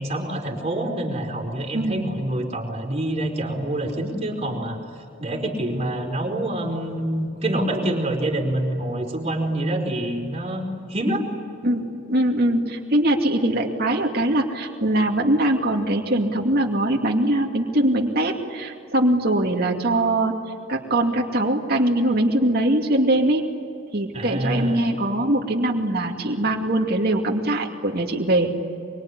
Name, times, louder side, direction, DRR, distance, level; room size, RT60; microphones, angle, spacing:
voice 1, 0.0-4.8 5.2-11.2 24.1-24.8, right 1 dB, 30° right, 0 dB, 4.6 m, -26 dB
voice 2, 1.7-2.0 11.6-20.3 20.7-23.4 23.9-28.6, right 1 dB, 50° right, 0 dB, 2.6 m, -22 dB
24.5 x 24.5 x 9.8 m, 2.5 s
head